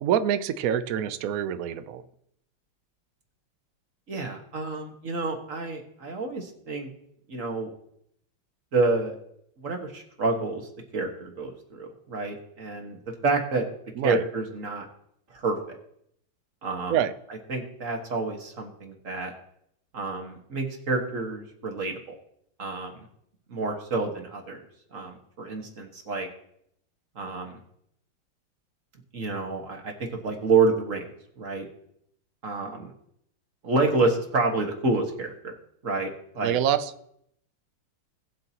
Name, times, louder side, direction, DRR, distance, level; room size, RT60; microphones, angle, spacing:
voice 1, 0.0-2.0 14.0-14.2 16.9-17.1 36.4-36.9, right 9 dB, 85° right, 11 dB, 0.7 m, -26 dB
voice 2, 4.1-6.9 7.3-7.7 8.7-9.2 9.6-10.7 10.9-13.7 14.0-14.9 15.3-15.6 16.6-17.0 17.5-19.3 19.9-22.1 22.6-22.9 23.5-24.7 24.9-26.3 27.2-27.6 29.1-31.1 31.4-31.7 32.4-32.9 33.6-35.5 35.8-36.6, right 3 dB, 40° right, 2 dB, 1.8 m, -28 dB
19.0 x 7.6 x 3.0 m, 0.72 s
omnidirectional pair, 2.3 m